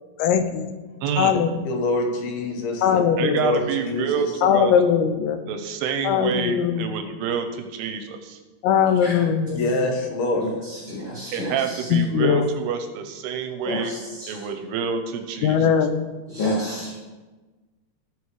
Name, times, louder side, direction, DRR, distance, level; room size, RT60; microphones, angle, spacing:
voice 1, 0.2-0.7 1.2-1.5 2.8-3.7 4.4-5.4 6.0-6.9 8.6-9.7 11.9-12.5 15.4-15.9, left 8 dB, 90° left, 8 dB, 2.9 m, -20 dB
voice 2, 1.0-1.5 3.2-4.7 5.5-8.4 11.3-13.9 14.3-15.7, right 7 dB, 85° right, 7 dB, 2.5 m, -27 dB
voice 3, 1.6-3.0 3.4-4.3 9.5-10.5, left 2 dB, 70° left, 2 dB, 2.9 m, -25 dB
voice 4, 10.4-11.9 13.6-14.5 16.3-17.0, left 1 dB, 55° left, -8 dB, 1.3 m, -30 dB
17.5 x 6.1 x 3.1 m, 1.3 s
omnidirectional pair, 5.0 m